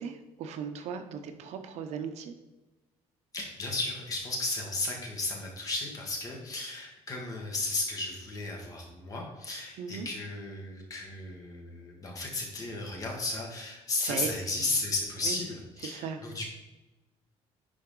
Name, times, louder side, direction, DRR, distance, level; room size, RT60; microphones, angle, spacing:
voice 1, 0.0-2.3 9.8-10.1 14.0-14.3 15.2-15.4 15.8-16.2, right 6 dB, 65° right, 7 dB, 0.8 m, -37 dB
voice 2, 3.3-16.4, left 2 dB, 30° left, 0 dB, 1.8 m, -34 dB
10.5 x 4.7 x 3.8 m, 1.1 s
cardioid pair, 165°, 12 cm